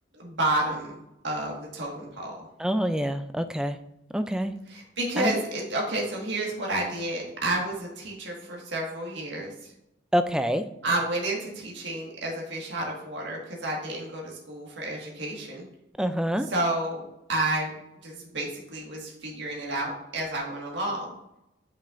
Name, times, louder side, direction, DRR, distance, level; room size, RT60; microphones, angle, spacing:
voice 1, 0.1-2.3 4.7-9.7 10.8-15.7 16.5-17.0 17.3-17.7 18.0-21.1, right 1 dB, 65° right, -2 dB, 1.7 m, -30 dB
voice 2, 2.6-3.8 4.1-4.5 5.2-5.3 10.1-10.6 16.0-16.5, equal, 5° right, 9 dB, 0.3 m, -26 dB
8.3 x 5.3 x 2.5 m, 0.84 s
head